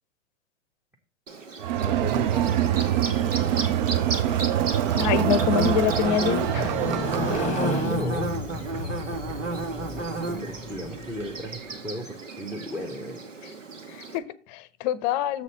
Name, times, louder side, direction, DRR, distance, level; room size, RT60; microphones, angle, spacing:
Bird / Buzz, 1.3-14.2, right 3 dB, 90° right, 1.3 m, -33 dB
Crowd, 1.6-7.9, right 11 dB, 40° right, 0.4 m, -25 dB
voice 1, 1.8-2.6 7.8-8.4 9.9-13.2, equal, 5° right, 0 dB, 0.8 m, -35 dB
voice 2, 4.9-6.8 13.9-15.4, left 9 dB, 35° left, 17 dB, 0.7 m, -26 dB
Motorcycle, 5.6-11.5, left 4 dB, 20° left, 1.0 m, -34 dB
7.0 x 4.1 x 6.5 m, 0.39 s
hypercardioid pair, 115°, 37 cm